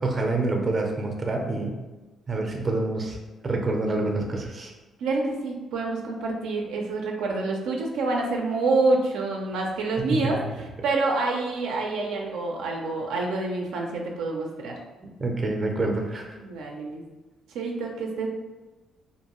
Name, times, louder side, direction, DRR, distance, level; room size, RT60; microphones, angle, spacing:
voice 1, 0.0-1.8 2.3-3.2 3.4-4.7 10.1-10.5 15.0-16.3, right 2 dB, 35° right, 2 dB, 0.5 m, -27 dB
voice 2, 5.0-14.7 16.4-17.0 17.5-18.3, right 3 dB, 90° right, 0 dB, 0.4 m, -27 dB
2.5 x 2.2 x 2.9 m, 1.2 s
cardioid pair, 90°, 0 cm